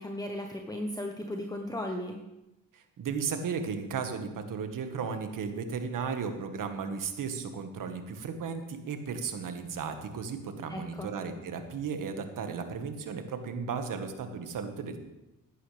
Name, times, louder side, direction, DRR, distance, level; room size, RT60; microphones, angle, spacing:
voice 1, 0.0-2.2 10.7-11.1, left 1 dB, 10° left, 2 dB, 1.1 m, -36 dB
voice 2, 2.7-15.0, right 6 dB, 60° right, 7 dB, 1.7 m, -35 dB
15.5 x 11.0 x 3.4 m, 0.96 s
cardioid pair, 95°, 36 cm